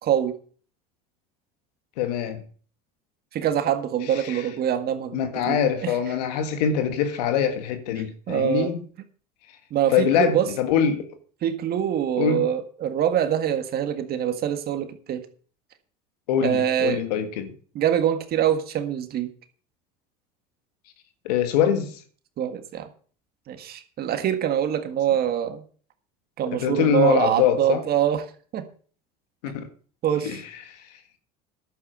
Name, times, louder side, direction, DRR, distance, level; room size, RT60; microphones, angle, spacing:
voice 1, 0.0-0.4 3.3-5.9 8.3-8.7 9.7-10.5 11.4-15.2 16.4-17.0 17.7-19.3 22.4-22.9 23.5-25.6 26.4-28.2 28.5-28.6 30.0-30.4, right 10 dB, 50° right, 1.7 m, -24 dB
voice 2, 2.0-2.4 4.1-4.4 5.1-8.8 9.9-11.2 12.2-12.5 16.3-17.5 21.2-22.0 26.5-27.8 29.4-29.7 30.2-31.0, left 8 dB, 80° left, 1.7 m, -24 dB
11.0 x 8.6 x 6.7 m
supercardioid pair, 85°, 20 cm